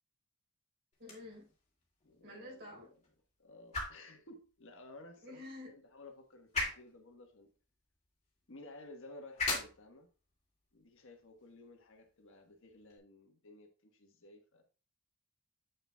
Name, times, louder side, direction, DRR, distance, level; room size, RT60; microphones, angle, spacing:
sound 1, 0.9-13.0, left 3 dB, 30° left, 2.4 m, -44 dB
voice 1, 1.0-1.5 2.2-2.9 5.2-5.7, left 1 dB, 50° right, 4.1 m, -49 dB
voice 2, 2.0-2.9 3.4-7.5 8.5-10.1 10.7-14.6, left 2 dB, 60° left, 1.3 m, -55 dB
7.8 x 6.7 x 2.3 m
head